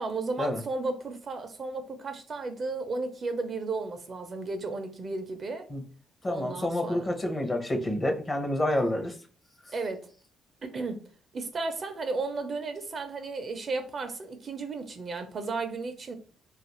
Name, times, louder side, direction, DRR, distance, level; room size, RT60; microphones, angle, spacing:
voice 1, 0.0-5.7 6.3-7.1 9.7-10.1 10.6-11.0 11.3-16.2, right 3 dB, 45° right, 0.5 m, -34 dB
voice 2, 6.2-9.1, left 1 dB, 30° left, 0.7 m, -28 dB
2.4 x 2.4 x 3.0 m
cardioid pair, 90°, 0 cm